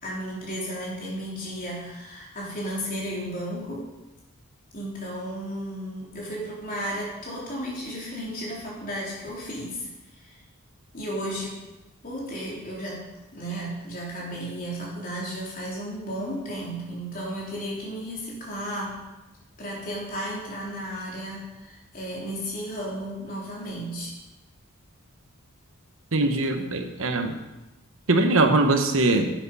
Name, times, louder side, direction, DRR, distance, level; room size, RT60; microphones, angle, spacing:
voice 1, 0.0-3.9 4.7-9.9 10.2-10.4 10.9-11.6 12.0-13.0 13.3-19.0 19.6-24.1 26.6-26.7, equal, 40° left, -4 dB, 3.8 m, -34 dB
voice 2, 26.1-27.4 28.1-29.3, right 2 dB, 65° right, 5 dB, 1.2 m, -21 dB
11.0 x 8.6 x 5.6 m, 1.0 s
head